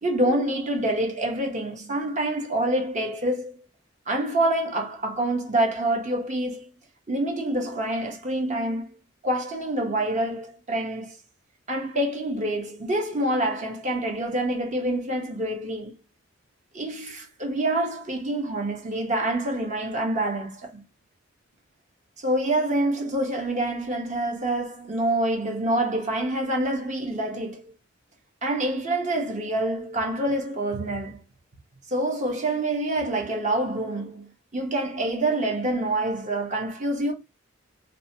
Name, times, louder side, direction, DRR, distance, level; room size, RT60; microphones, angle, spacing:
voice 1, 0.0-3.6 4.1-6.7 7.1-9.0 9.2-11.2 11.7-15.9 16.7-20.8 22.2-27.7 28.4-31.2 31.9-37.1, right 1 dB, 35° right, 0.8 m, -26 dB
2.8 x 2.1 x 2.7 m
head